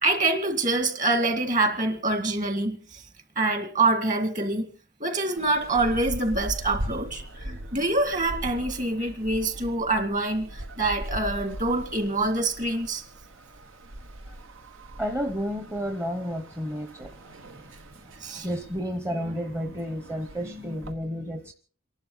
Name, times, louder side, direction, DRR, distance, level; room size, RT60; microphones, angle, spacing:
voice 1, 0.0-3.0 3.4-4.7 5.0-13.0 18.2-18.5, right 2 dB, 40° right, 2.0 m, -25 dB
sound 1, 5.4-20.9, right 1 dB, 75° right, 1.2 m, -40 dB
voice 2, 15.0-17.7 18.3-21.5, equal, 15° right, 0.8 m, -32 dB
28.5 x 11.5 x 3.9 m
head